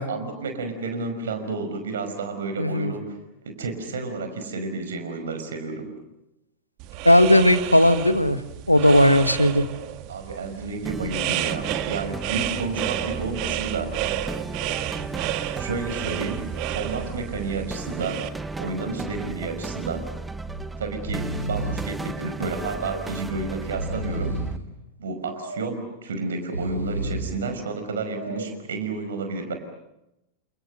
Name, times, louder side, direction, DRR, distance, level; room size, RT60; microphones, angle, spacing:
voice 1, 0.1-5.9 10.1-14.0 14.6-14.8 15.5-18.3 18.6-20.1 20.8-24.4 25.0-29.5, right 3 dB, 65° right, 7 dB, 5.3 m, -31 dB
voice 2, 2.6-2.9 7.0-8.4 8.7-9.7, left 1 dB, 85° left, 12 dB, 1.4 m, -17 dB
sound 1, 6.8-18.3, right 14 dB, 45° right, 1.6 m, -31 dB
sound 2, 10.9-24.6, right 3 dB, 10° right, 1.2 m, -35 dB
Breathing, 18.8-19.2 19.5-19.6 20.5-20.7 20.9-21.9 22.5-23.2 23.6-24.6 25.2-25.9 26.4-27.4 28.0-28.6, right 1 dB, 85° right, 3.3 m, -32 dB
29.5 x 28.5 x 6.7 m, 0.90 s
figure-of-eight pair, 90°, 0 cm